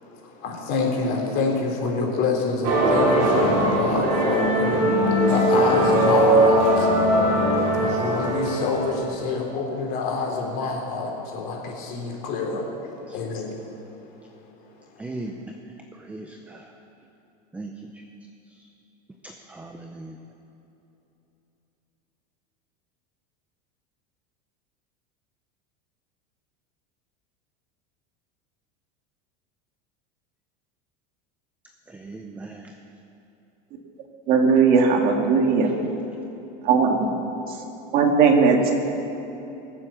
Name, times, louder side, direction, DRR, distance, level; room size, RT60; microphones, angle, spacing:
voice 1, 0.0-6.9 7.8-12.7 13.1-13.6, left 4 dB, 45° left, 0 dB, 3.5 m, -26 dB
sound 1, 2.6-9.2, right 1 dB, 65° right, 3.7 m, -20 dB
voice 2, 15.0-15.3 15.9-16.6 17.5-17.7 19.2-20.2 31.9-32.7 35.6-35.7, right 2 dB, 5° right, 3 dB, 0.6 m, -38 dB
voice 3, 34.3-35.7 36.7-37.0 37.9-38.7, right 5 dB, 45° right, 2 dB, 1.9 m, -18 dB
22.5 x 7.7 x 7.2 m, 3.0 s
supercardioid pair, 155°, 21 cm